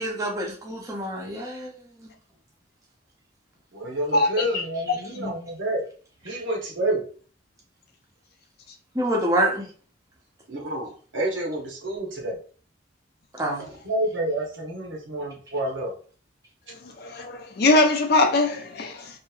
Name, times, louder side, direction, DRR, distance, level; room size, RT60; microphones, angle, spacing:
voice 1, 0.0-1.7 2.0-2.1 8.9-9.7 13.4-13.7, right 1 dB, 15° right, 0.6 m, -26 dB
voice 2, 3.7-5.8 6.2-7.0 10.5-12.4 13.8-15.9, right 1 dB, 70° right, 0.9 m, -28 dB
voice 3, 17.0-19.1, left 2 dB, 50° left, 0.4 m, -21 dB
2.8 x 2.5 x 2.3 m
head